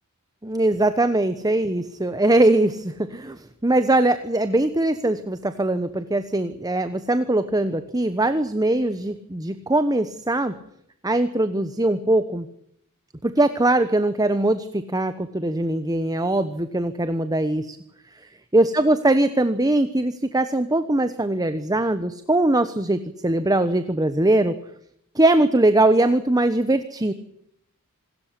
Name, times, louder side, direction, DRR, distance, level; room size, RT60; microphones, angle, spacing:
voice 1, 0.4-10.5 11.0-12.5 13.2-17.8 18.5-24.5 25.1-27.1, right 1 dB, 15° right, 11 dB, 1.1 m, -21 dB
26.5 x 13.5 x 9.8 m, 0.73 s
head